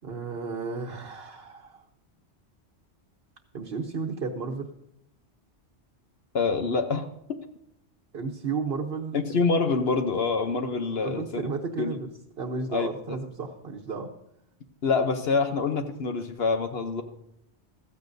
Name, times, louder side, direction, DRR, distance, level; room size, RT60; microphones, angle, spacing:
voice 1, 0.0-1.8 3.5-4.7 8.1-9.2 11.0-12.1 12.4-14.1, right 4 dB, 60° right, 1 dB, 1.2 m, -33 dB
voice 2, 6.3-7.4 9.1-11.4 11.8-11.9 12.7-12.9 14.8-17.0, left 4 dB, 65° left, 6 dB, 1.0 m, -26 dB
15.5 x 14.0 x 2.7 m, 0.80 s
omnidirectional pair, 1.1 m